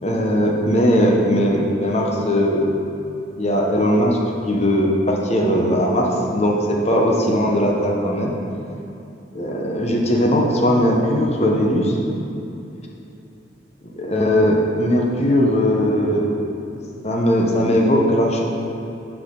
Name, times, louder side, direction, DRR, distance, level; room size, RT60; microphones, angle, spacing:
voice 1, 0.0-2.7 3.4-4.2 4.5-8.3 9.3-12.0 14.0-16.3 17.0-18.4, equal, 35° left, 0 dB, 0.9 m, -19 dB
10.5 x 4.9 x 3.8 m, 2.8 s
head